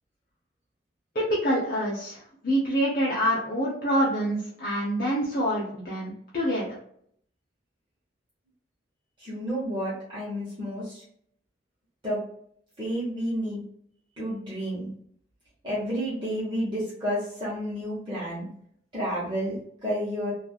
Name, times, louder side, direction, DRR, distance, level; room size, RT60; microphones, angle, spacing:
voice 1, 1.1-6.7, equal, 50° left, -6 dB, 0.7 m, -26 dB
voice 2, 9.2-11.0 12.0-12.2 12.8-13.6 14.2-14.9 15.6-18.5 18.9-19.5 19.8-20.3, equal, 25° right, -9 dB, 0.9 m, -30 dB
3.1 x 2.4 x 2.3 m, 0.65 s
head